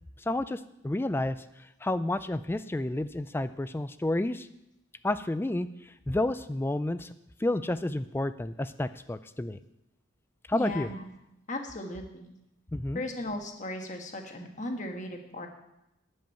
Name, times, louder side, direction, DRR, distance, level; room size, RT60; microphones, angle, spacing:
voice 1, 0.3-1.4 1.8-4.5 5.0-5.7 6.1-7.1 7.4-9.6 10.5-10.9 12.7-13.0, left 1 dB, 10° left, 13 dB, 0.3 m, -30 dB
voice 2, 10.5-11.1 11.5-12.3 12.9-15.5, left 1 dB, 35° left, 3 dB, 1.4 m, -36 dB
12.5 x 5.4 x 9.0 m, 0.86 s
head